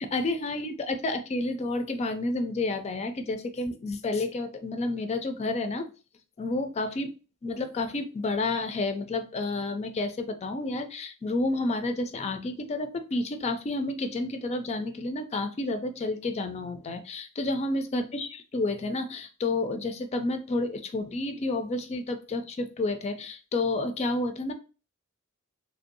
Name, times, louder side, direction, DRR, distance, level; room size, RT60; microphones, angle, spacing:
voice 1, 0.0-5.9 6.4-7.1 7.4-24.5, left 2 dB, 30° left, 8 dB, 0.3 m, -30 dB
3.2 x 2.5 x 2.6 m, 0.34 s
head